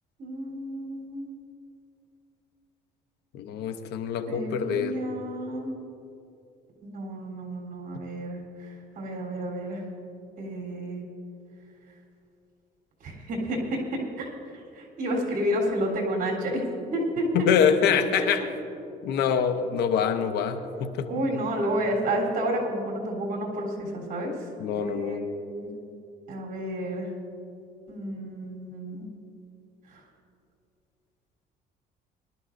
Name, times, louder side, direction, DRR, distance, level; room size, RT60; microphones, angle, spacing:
voice 1, 0.2-1.3 4.3-5.7 6.8-9.8 10.4-11.0 13.0-13.8 14.2-14.3 14.8-16.6 16.9-17.5 21.1-24.3 24.8-25.2 25.5-25.7 26.3-27.1 27.9-29.1 29.9-30.0, right 1 dB, 55° right, -1 dB, 3.6 m, -30 dB
voice 2, 3.3-5.0 17.3-18.5 19.0-21.4 24.6-25.2, left 7 dB, 80° left, 8 dB, 0.9 m, -25 dB
21.5 x 12.5 x 2.6 m, 2.7 s
cardioid pair, 110°, 17 cm